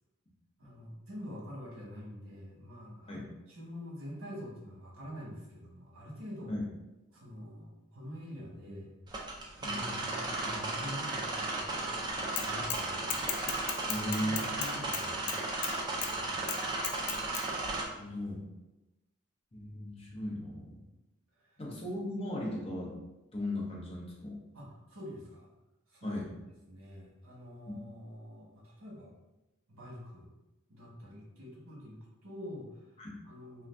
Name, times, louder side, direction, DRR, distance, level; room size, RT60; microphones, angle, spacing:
voice 1, 0.6-6.5 7.1-8.9 9.5-13.2 13.8-15.4 15.6-17.2 21.3-21.6 24.5-25.5 25.9-26.2 26.7-29.1 29.7-30.3 30.7-32.9 33.2-33.7, equal, 85° right, -4 dB, 1.0 m, -46 dB
sound 1, 9.1-17.8, right 2 dB, 20° right, 0.4 m, -35 dB
voice 2, 9.6-10.0 13.9-14.8 17.9-18.4 19.5-20.8 21.6-23.0 23.3-24.4 26.0-26.3 27.7-27.8 33.0-33.1, left 1 dB, 30° left, -3 dB, 0.6 m, -37 dB
Bicycle / Mechanisms, 12.4-12.8 13.1-15.7 16.0-16.1 16.5-17.4, left 8 dB, 90° left, 0.4 m, -35 dB
2.5 x 2.3 x 3.3 m, 1.0 s
head